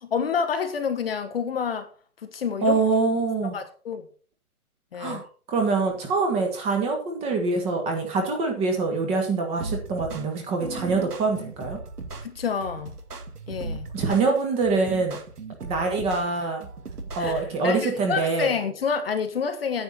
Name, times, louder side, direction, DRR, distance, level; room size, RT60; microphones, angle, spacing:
voice 1, 0.0-1.9 2.2-2.8 3.5-4.1 4.9-5.2 12.2-12.9 13.5-13.9 17.2-19.8, left 6 dB, 40° left, 1.0 m, -28 dB
voice 2, 2.6-3.6 5.0-11.8 13.9-15.2 15.6-16.7 17.1-18.5, right 3 dB, 15° right, 1.5 m, -25 dB
sound 1, 9.6-17.6, right 3 dB, 85° right, 2.2 m, -37 dB
9.5 x 8.5 x 4.2 m
hypercardioid pair, 155°, 45 cm